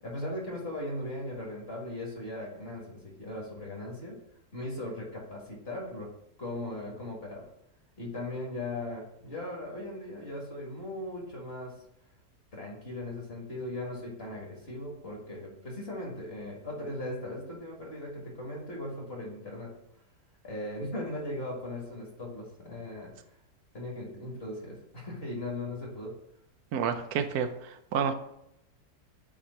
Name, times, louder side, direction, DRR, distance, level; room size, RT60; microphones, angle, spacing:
voice 1, 0.0-4.2 4.5-6.1 6.4-7.5 8.0-11.7 12.5-19.7 20.4-23.1 23.7-26.1, left 1 dB, 40° left, -2 dB, 1.6 m, -38 dB
voice 2, 26.7-28.1, right 7 dB, 75° right, 9 dB, 1.1 m, -30 dB
8.1 x 3.0 x 4.2 m, 0.78 s
omnidirectional pair, 1.7 m